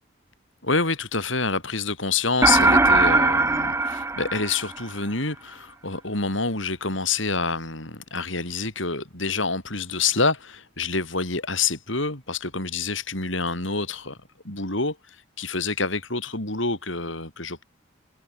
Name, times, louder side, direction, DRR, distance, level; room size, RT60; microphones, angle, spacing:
voice 1, 0.6-14.2 14.4-17.6, left 4 dB, 75° left, 7.7 m, -27 dB
sound 1, 2.4-5.0, right 3 dB, 15° right, 0.7 m, -20 dB
head